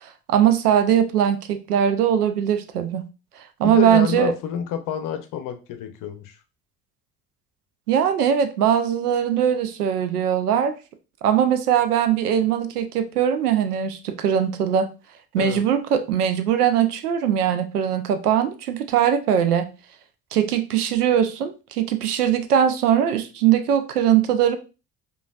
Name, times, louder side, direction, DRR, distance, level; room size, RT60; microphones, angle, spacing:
voice 1, 0.0-3.1 3.6-4.3 7.9-10.8 11.2-14.9 15.3-19.7 20.3-24.6, right 9 dB, 80° right, 9 dB, 0.5 m, -21 dB
voice 2, 3.6-6.3 15.4-15.6, left 8 dB, 45° left, 8 dB, 0.7 m, -28 dB
4.8 x 2.4 x 2.3 m, 0.31 s
figure-of-eight pair, 50°, 45 cm